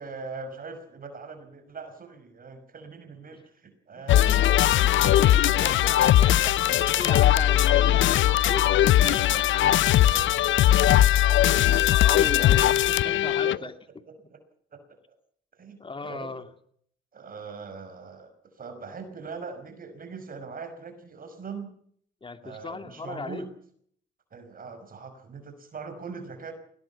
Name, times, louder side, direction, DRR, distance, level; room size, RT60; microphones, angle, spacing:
voice 1, 0.0-4.4 4.7-6.6 8.2-8.7 9.0-12.6 13.0-13.6 14.1-14.4 14.7-14.8 15.6-16.3 17.1-18.3 18.6-21.7 22.4-23.5 24.3-26.5, right 4 dB, 45° right, 8 dB, 5.6 m, -42 dB
voice 2, 3.9-4.8 5.4-8.6 12.0-13.7 15.8-16.5 22.2-23.4, left 3 dB, 25° left, 8 dB, 2.7 m, -37 dB
sound 1, 4.1-13.6, left 13 dB, 75° left, 0.8 m, -20 dB
21.0 x 17.5 x 7.2 m, 0.62 s
cardioid pair, 90°, 20 cm